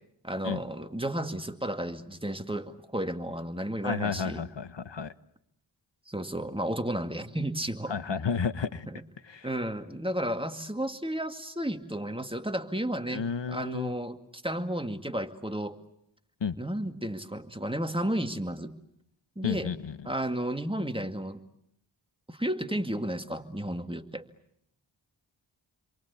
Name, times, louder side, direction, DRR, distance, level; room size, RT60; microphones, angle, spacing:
voice 1, 0.2-4.4 6.1-7.9 8.9-9.0 9.4-15.8 16.6-18.7 19.4-19.7 20.0-21.4 22.3-24.3, right 1 dB, 10° right, 7 dB, 2.2 m, -33 dB
voice 2, 3.8-5.1 7.9-8.9 9.3-9.5 13.1-13.9 16.4-16.6 19.4-19.9, left 6 dB, 65° left, 14 dB, 1.1 m, -32 dB
29.5 x 23.5 x 8.4 m, 0.74 s
cardioid pair, 45°, 47 cm